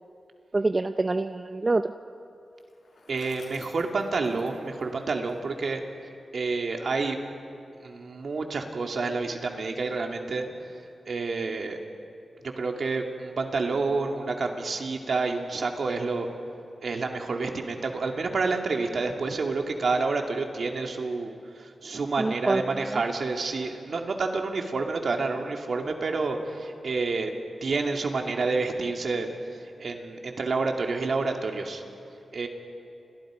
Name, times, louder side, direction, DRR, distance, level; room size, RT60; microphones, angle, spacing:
voice 1, 0.5-1.9 22.2-23.0, right 2 dB, 35° right, 8 dB, 0.7 m, -26 dB
Bicycle, 2.5-5.7, left 2 dB, 70° left, 6.2 m, -53 dB
voice 2, 3.1-5.8 6.3-7.2 7.8-10.5 11.1-11.8 12.6-16.3 16.8-27.3 27.6-31.8 32.3-32.5, right 3 dB, 65° right, 2 dB, 2.6 m, -29 dB
30.0 x 27.0 x 5.1 m, 2.7 s
cardioid pair, 75°, 0 cm